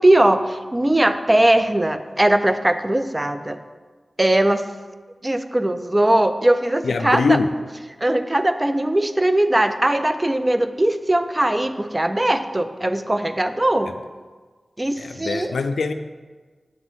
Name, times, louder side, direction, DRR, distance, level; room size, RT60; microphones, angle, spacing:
voice 1, 0.0-3.6 4.2-4.6 5.2-7.4 8.0-13.9 14.8-15.5, right 1 dB, 25° right, 10 dB, 0.4 m, -19 dB
voice 2, 6.8-7.5 15.0-15.9, left 4 dB, 90° left, 9 dB, 0.3 m, -22 dB
7.3 x 3.0 x 5.5 m, 1.4 s
cardioid pair, 45°, 0 cm